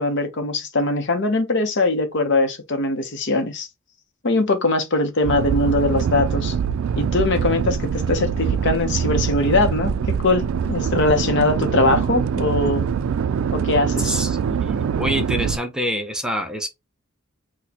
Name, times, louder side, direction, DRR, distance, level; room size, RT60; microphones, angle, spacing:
voice 1, 0.0-3.7 4.2-6.6 7.0-12.9 13.5-14.2, left 2 dB, 60° left, 0.7 m, -21 dB
sound 1, 5.2-15.6, right 7 dB, 70° right, 0.3 m, -23 dB
voice 2, 14.0-16.7, equal, 5° right, 0.5 m, -26 dB
4.2 x 2.1 x 2.8 m
head